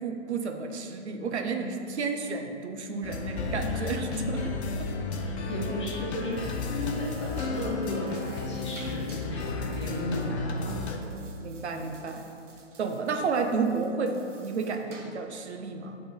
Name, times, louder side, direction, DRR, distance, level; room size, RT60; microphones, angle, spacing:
voice 1, 0.0-4.9 10.6-10.9 11.4-12.2 12.8-16.0, right 4 dB, 65° right, 5 dB, 0.7 m, -32 dB
sound 1, 3.0-11.0, left 3 dB, 65° left, 0.8 m, -33 dB
voice 2, 5.1-11.0 11.7-12.0, left 1 dB, 25° left, -5 dB, 0.8 m, -35 dB
sound 2, 6.1-15.4, right 4 dB, 85° right, 1.1 m, -53 dB
7.6 x 3.7 x 4.4 m, 2.6 s
hypercardioid pair, 180°, 36 cm